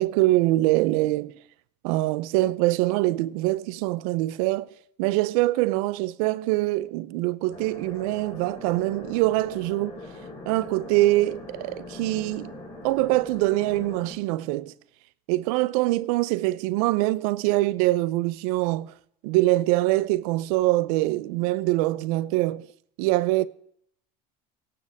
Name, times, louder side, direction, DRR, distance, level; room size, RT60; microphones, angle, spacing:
voice 1, 0.0-1.3 1.8-4.7 5.0-10.0 10.5-12.5 12.8-14.7 15.3-18.9 19.2-22.7 23.0-23.5, right 18 dB, 75° right, 0.7 m, -24 dB
sound 1, 7.5-14.1, left 2 dB, 35° left, 6.7 m, -41 dB
25.5 x 8.9 x 3.6 m
cardioid pair, 150°, 19 cm